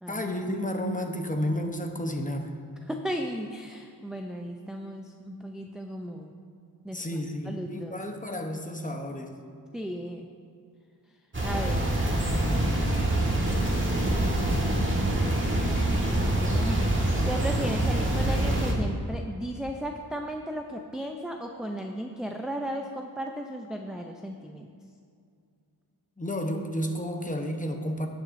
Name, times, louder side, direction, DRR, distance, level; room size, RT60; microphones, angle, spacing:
voice 1, 0.1-2.5 6.9-9.3 26.2-28.1, equal, 20° left, 4 dB, 0.8 m, -31 dB
voice 2, 2.9-6.3 6.8-7.0 7.5-8.0 9.7-10.3 11.4-11.9 15.1-24.7, equal, ahead, 2 dB, 0.4 m, -35 dB
sound 1, 11.3-18.7, right 1 dB, 30° right, 1.5 m, -25 dB
17.0 x 6.0 x 2.6 m, 2.3 s
wide cardioid pair, 90°, 40 cm